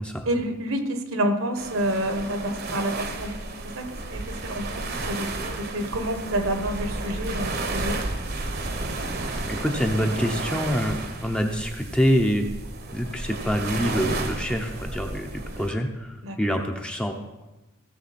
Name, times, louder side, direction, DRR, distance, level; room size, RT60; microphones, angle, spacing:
voice 1, 0.3-3.4 3.7-8.0 16.2-16.4, right 1 dB, 65° right, 6 dB, 1.2 m, -28 dB
sound 1, 1.6-15.7, right 2 dB, 45° right, 1.0 m, -32 dB
voice 2, 9.4-12.5 12.9-17.1, equal, 5° left, 3 dB, 0.7 m, -26 dB
16.5 x 6.9 x 4.3 m, 1.0 s
head